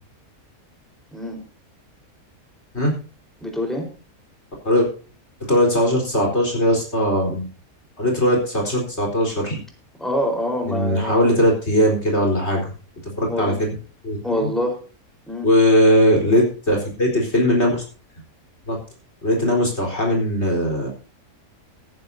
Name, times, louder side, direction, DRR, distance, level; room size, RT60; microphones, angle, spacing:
voice 1, 3.4-3.9 10.0-11.3 13.3-13.6 14.2-14.8 15.3-15.5, left 1 dB, ahead, 2 dB, 4.3 m, -25 dB
voice 2, 5.5-7.4 8.0-9.6 10.7-12.7 13.2-13.7 14.0-14.5 15.4-17.8 18.7-18.8 19.2-20.9, equal, 45° left, 0 dB, 4.5 m, -19 dB
15.0 x 14.5 x 2.8 m, 0.37 s
omnidirectional pair, 1.5 m